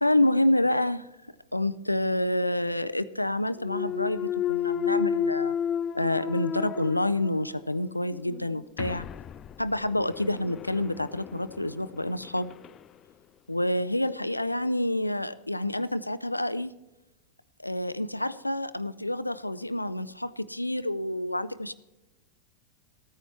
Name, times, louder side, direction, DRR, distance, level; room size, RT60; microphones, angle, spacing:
voice 1, 0.0-1.1 1.5-5.5 5.9-9.1 9.6-12.5 13.5-16.7 17.6-21.7, left 1 dB, 85° left, 15 dB, 0.5 m, -28 dB
Thump thud, 3.6-7.6 8.1-12.8, left 8 dB, 30° left, 0.3 m, -32 dB
14.5 x 9.5 x 4.4 m, 0.99 s
figure-of-eight pair, 90°, 0 cm